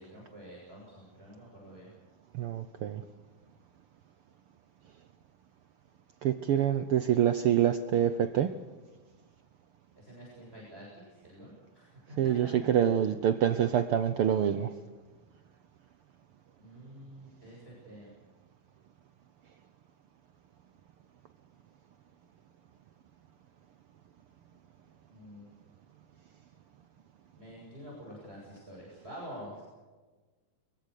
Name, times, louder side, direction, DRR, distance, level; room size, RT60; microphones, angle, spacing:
voice 1, 0.0-1.9 10.0-12.5 16.6-18.1 25.1-25.5 27.4-29.6, equal, 20° right, -4 dB, 7.7 m, -48 dB
voice 2, 2.3-3.0 6.2-8.5 12.2-14.7, right 9 dB, 70° right, 11 dB, 1.3 m, -26 dB
23.5 x 22.5 x 6.6 m, 1.3 s
omnidirectional pair, 3.4 m